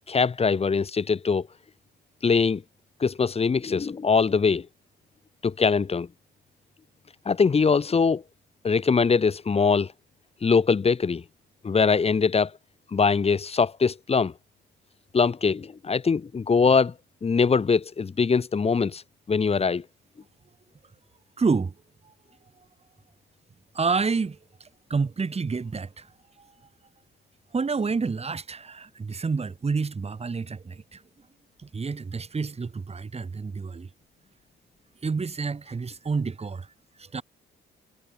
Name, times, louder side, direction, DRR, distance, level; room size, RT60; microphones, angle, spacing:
voice 1, 0.1-1.5 2.2-2.6 3.0-4.7 5.4-6.1 7.2-8.2 8.6-9.9 10.4-11.2 11.6-12.5 12.9-14.3 15.1-16.9 17.2-19.0 19.3-19.8, left 5 dB, 30° left, 1.2 m, -22 dB
voice 2, 21.4-21.7 22.0-22.1 23.7-26.1 26.4-26.5 27.5-31.0 31.6-33.9 35.0-36.7 37.0-37.2, right 4 dB, 30° right, 4.7 m, -29 dB
cardioid pair, 90°, 20 cm